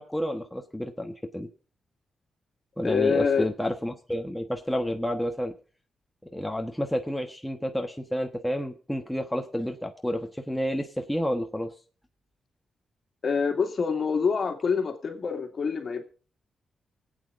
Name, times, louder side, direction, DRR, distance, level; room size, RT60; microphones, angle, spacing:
voice 1, 0.0-1.5 2.8-5.5 6.3-11.7, equal, 5° left, 4 dB, 1.2 m, -30 dB
voice 2, 2.8-3.5 13.2-16.0, left 5 dB, 55° left, 5 dB, 2.2 m, -26 dB
24.0 x 8.7 x 2.6 m, 0.38 s
cardioid pair, 90°, 0 cm